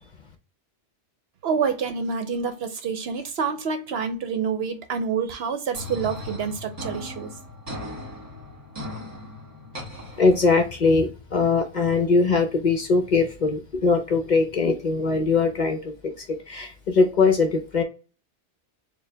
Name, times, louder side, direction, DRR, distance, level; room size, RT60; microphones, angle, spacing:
voice 1, 1.4-7.3, right 6 dB, 65° right, 8 dB, 0.8 m, -27 dB
sound 1, 5.7-10.7, left 1 dB, 30° right, 1.5 m, -38 dB
voice 2, 10.2-17.8, left 4 dB, 45° left, 5 dB, 0.7 m, -21 dB
4.5 x 2.3 x 3.2 m, 0.34 s
omnidirectional pair, 1.2 m